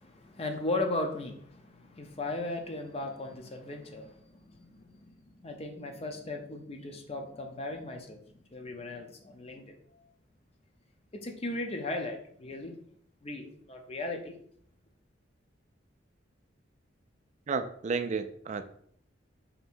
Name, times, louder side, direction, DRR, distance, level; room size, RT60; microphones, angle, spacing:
voice 1, 0.0-9.7 11.1-12.7 13.2-14.3, left 2 dB, 35° left, 3 dB, 0.5 m, -37 dB
voice 2, 17.5-18.6, right 4 dB, 40° right, 10 dB, 0.3 m, -32 dB
3.2 x 2.8 x 4.3 m, 0.64 s
head